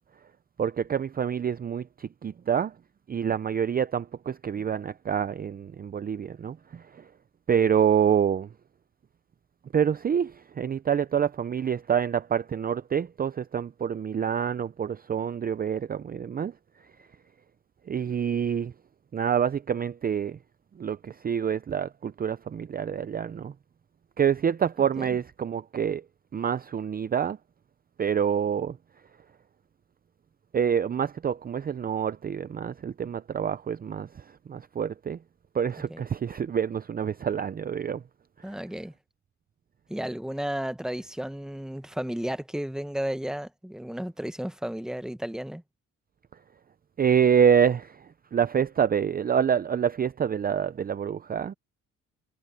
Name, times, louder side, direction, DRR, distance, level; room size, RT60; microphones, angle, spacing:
voice 1, 0.6-2.7 3.1-7.0 7.5-8.5 9.7-16.5 17.9-18.7 19.1-20.4 20.8-23.5 24.2-26.0 26.3-27.4 28.0-28.8 30.5-34.1 34.5-35.2 35.5-38.0 38.5-38.6 47.0-48.0 48.3-51.5, right 8 dB, 30° right, 0.5 m, -27 dB
voice 2, 24.8-25.2 35.9-36.0 38.4-38.9 39.9-45.6, right 1 dB, ahead, 1.2 m, -33 dB
cardioid pair, 90°, 30 cm